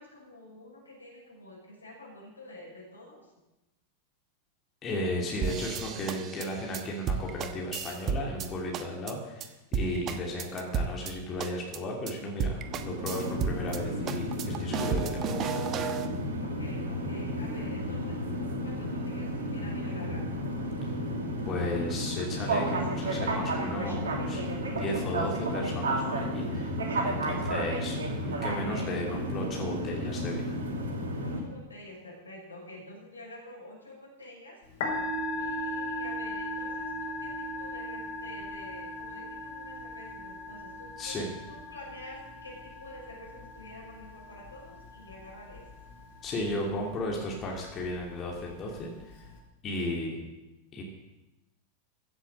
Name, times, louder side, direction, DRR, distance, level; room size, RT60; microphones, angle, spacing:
voice 1, 0.0-3.3 16.6-20.2 27.1-27.4 31.2-34.6 35.3-41.2 41.5-45.6 49.9-50.0, left 1 dB, 80° left, -2 dB, 5.9 m, -48 dB
voice 2, 4.8-15.7 20.8-20.9 21.4-26.8 27.0-28.0 28.2-30.5 41.0-41.3 46.2-48.9 49.6-50.2 50.7-50.8, left 1 dB, 30° left, -1 dB, 3.0 m, -35 dB
sound 1, 5.4-8.5 8.7-9.1 9.4-9.5 9.7-11.1 11.4-11.8 12.1-12.2 12.4-13.8 14.1-16.1, right 6 dB, 30° right, 1.2 m, -32 dB
sound 2, 12.6-31.4, equal, 65° right, 2.6 m, -32 dB
Musical instrument, 34.6-49.4, left 1 dB, 55° left, 4.9 m, -39 dB
15.0 x 8.0 x 7.8 m, 0.99 s
figure-of-eight pair, 90°, 0 cm